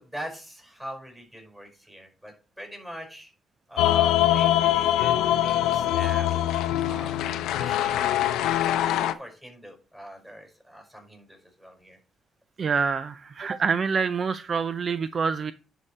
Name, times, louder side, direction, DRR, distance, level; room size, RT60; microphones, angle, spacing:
voice 1, 0.0-3.3 3.7-6.4 6.8-7.2 7.5-12.0, equal, 10° right, 5.4 m, -42 dB
sound 1, 3.8-9.1, left 12 dB, 90° left, 0.6 m, -23 dB
voice 2, 12.6-15.5, right 5 dB, 45° right, 0.4 m, -26 dB
11.0 x 5.0 x 4.4 m
cardioid pair, 90°, 0 cm